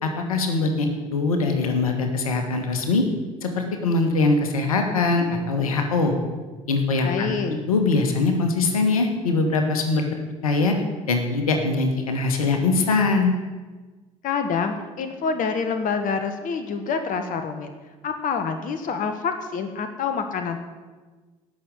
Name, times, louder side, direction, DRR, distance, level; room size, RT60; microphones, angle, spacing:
voice 1, 0.0-3.0 3.4-6.1 6.7-7.4 7.7-10.0 10.4-10.7 11.1-13.3, left 3 dB, 85° left, 5 dB, 1.7 m, -22 dB
voice 2, 7.0-7.6 14.2-17.7 18.0-20.6, left 5 dB, 50° left, 7 dB, 1.4 m, -27 dB
17.0 x 6.5 x 8.4 m, 1.3 s
hypercardioid pair, 60°, 18 cm